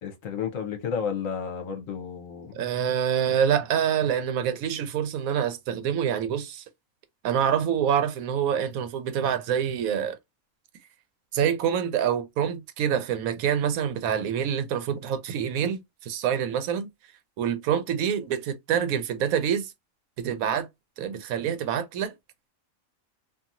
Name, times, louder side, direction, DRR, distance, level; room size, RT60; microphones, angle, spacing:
voice 1, 0.0-2.6, left 7 dB, 70° left, 1.1 m, -32 dB
voice 2, 2.5-6.6 7.2-10.2 11.3-16.9 17.4-19.7 20.2-20.7 21.0-22.1, right 8 dB, 80° right, 1.0 m, -26 dB
2.8 x 2.6 x 2.4 m
omnidirectional pair, 1.5 m